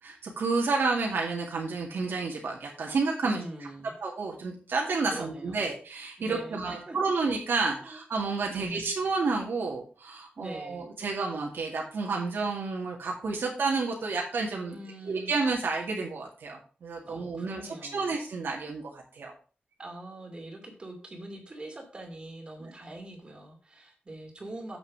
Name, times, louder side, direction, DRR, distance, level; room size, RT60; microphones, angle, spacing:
voice 1, 0.0-3.4 4.0-14.8 15.0-17.6 17.9-19.3 22.6-22.7, right 4 dB, 75° right, -2 dB, 2.2 m, -30 dB
voice 2, 3.2-3.9 5.0-5.7 6.2-7.0 7.7-8.0 8.5-8.9 10.4-10.9 14.7-15.3 17.0-18.1 19.8-24.8, right 1 dB, 30° right, 2 dB, 2.6 m, -43 dB
7.9 x 6.2 x 6.1 m, 0.38 s
wide cardioid pair, 175°, 4 cm